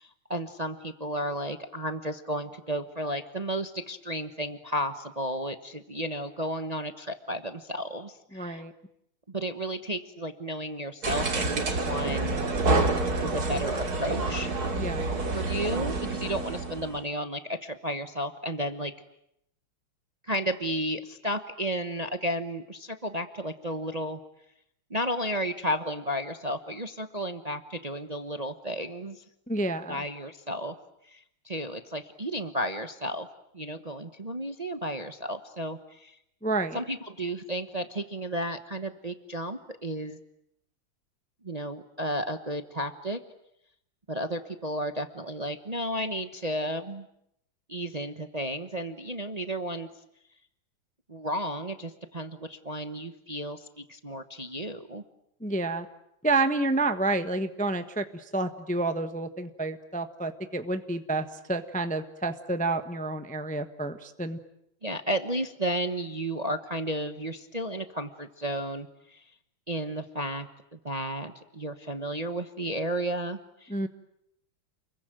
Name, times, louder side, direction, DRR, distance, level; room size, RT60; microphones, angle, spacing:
voice 1, 0.0-8.6 9.3-12.4 13.2-14.5 15.3-18.9 20.2-24.2 24.9-29.2 29.9-30.7 31.1-33.3 33.5-36.2 36.7-40.2 41.4-43.2 44.1-47.1 47.7-49.9 51.1-55.0 64.8-69.2 69.7-73.9, equal, 25° right, 8 dB, 1.0 m, -33 dB
voice 2, 8.3-8.7 14.8-15.1 29.5-30.0 36.4-36.8 55.4-55.9 56.2-64.4 73.7-73.9, right 2 dB, 5° left, 8 dB, 0.9 m, -29 dB
sound 1, 11.0-17.0, right 2 dB, 50° right, 2.9 m, -28 dB
29.5 x 22.5 x 9.1 m, 0.77 s
omnidirectional pair, 2.2 m